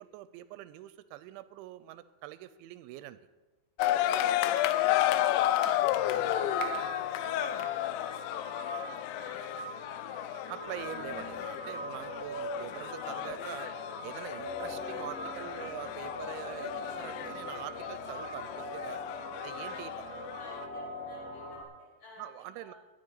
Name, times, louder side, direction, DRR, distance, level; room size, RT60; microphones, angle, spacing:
voice 1, 0.0-3.2 4.7-4.9 5.4-5.6 10.5-13.7 14.0-19.0 19.4-19.9 22.2-22.7, right 14 dB, 85° right, 14 dB, 2.9 m, -44 dB
sound 1, 3.8-20.7, left 13 dB, 80° left, 2.8 m, -33 dB
sound 2, 5.8-21.6, equal, 65° left, 1.5 m, -41 dB
voice 2, 6.3-10.6 19.5-22.8, left 1 dB, 45° left, -5 dB, 7.2 m, -55 dB
18.5 x 12.5 x 4.0 m, 1.2 s
omnidirectional pair, 5.4 m